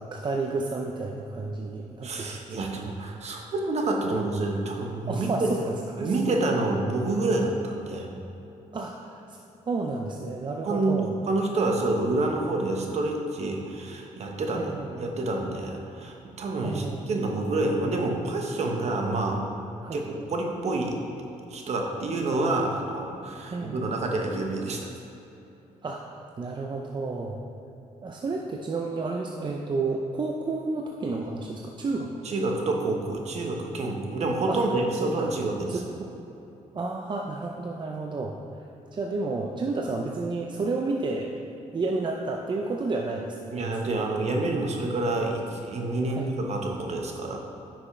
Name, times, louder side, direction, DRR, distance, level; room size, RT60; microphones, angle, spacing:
voice 1, 0.0-2.4 4.1-4.2 5.1-6.1 8.7-11.1 14.5-15.1 16.6-17.2 19.8-20.0 23.5-23.9 25.8-27.4 28.0-32.1 34.5-34.6 35.0-36.1 36.7-38.3 38.9-41.3 41.7-43.9 46.1-46.3, right 3 dB, 35° right, 0 dB, 0.6 m, -31 dB
voice 2, 2.0-5.5 6.0-8.1 10.6-11.0 11.3-14.7 15.0-19.4 19.9-21.0 21.5-24.9 32.2-35.8 43.5-47.4, right 2 dB, 55° right, 1 dB, 1.2 m, -28 dB
9.9 x 6.2 x 3.3 m, 3.0 s
cardioid pair, 90°, 14 cm